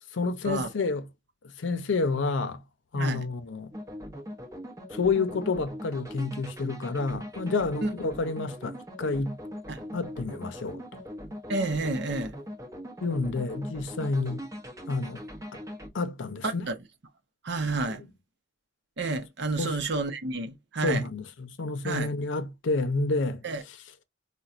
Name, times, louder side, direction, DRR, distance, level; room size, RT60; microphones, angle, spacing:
voice 1, 0.1-1.0 1.6-2.6 2.9-3.7 4.9-9.4 9.9-10.8 13.0-14.4 14.9-15.2 15.5-15.6 15.9-16.7 17.9-18.0 19.6-19.8 20.8-23.4, left 3 dB, 85° left, 0.6 m, -29 dB
voice 2, 3.0-3.3 7.8-7.9 9.7-9.8 11.5-12.4 16.4-16.7 17.4-18.0 19.0-21.0 21.8-22.1 23.4-23.6, right 3 dB, 65° right, 0.7 m, -30 dB
sound 1, 3.7-15.9, equal, 20° right, 0.7 m, -41 dB
4.2 x 2.2 x 2.4 m
head